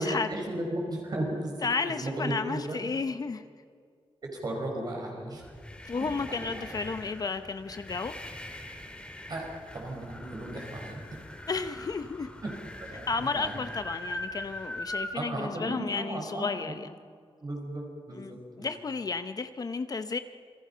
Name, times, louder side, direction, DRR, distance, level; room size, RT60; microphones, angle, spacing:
voice 1, 0.0-2.9 4.2-5.4 6.3-6.8 9.3-11.0 12.4-12.5 12.8-13.7 15.1-16.8 17.4-18.7, right 1 dB, 45° right, 1 dB, 5.6 m, -35 dB
voice 2, 1.6-3.4 5.8-8.1 11.5-12.3 13.1-16.9 18.1-20.2, left 4 dB, 40° left, 10 dB, 0.8 m, -32 dB
sound 1, 5.4-15.1, left 1 dB, 10° left, 2.2 m, -42 dB
28.0 x 21.5 x 5.7 m, 2.1 s
wide cardioid pair, 155°, 10 cm